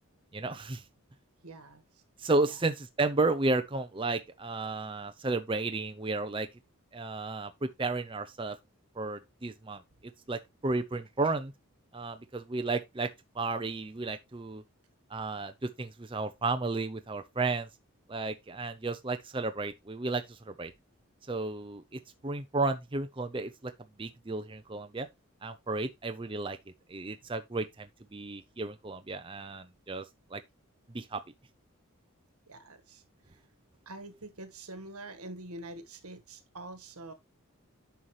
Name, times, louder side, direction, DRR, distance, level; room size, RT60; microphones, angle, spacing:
voice 1, 0.3-0.8 2.2-6.5 6.9-8.6 9.0-11.5 11.9-13.1 13.3-14.6 15.1-17.7 18.1-20.7 21.3-23.7 24.0-25.1 25.4-26.6 26.9-30.0 30.3-30.4 30.9-31.2, right 3 dB, 25° right, 0.6 m, -33 dB
voice 2, 1.4-1.8 2.4-2.6 32.5-33.0 33.9-37.1, right 2 dB, 90° right, 1.5 m, -45 dB
9.7 x 5.7 x 3.1 m
head